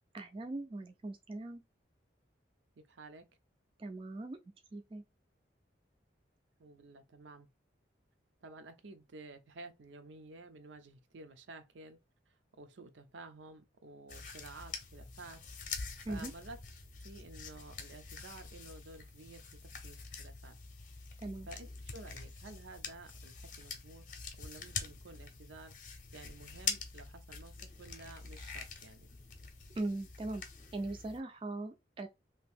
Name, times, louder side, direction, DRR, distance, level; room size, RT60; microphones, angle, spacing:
voice 1, 0.1-1.6 3.8-4.4 4.7-5.0 16.1-16.3 21.2-21.5 29.8-30.4 30.7-32.1, right 2 dB, 25° right, 0.3 m, -40 dB
voice 2, 2.8-3.3 6.6-7.5 8.4-12.0 12.3-15.4 16.1-16.6 17.0-20.6 21.5-24.1 24.3-25.7 26.1-29.1, right 2 dB, 80° right, 0.6 m, -52 dB
sound 1, 14.1-31.2, left 5 dB, 45° left, 0.7 m, -45 dB
2.9 x 2.6 x 3.4 m
head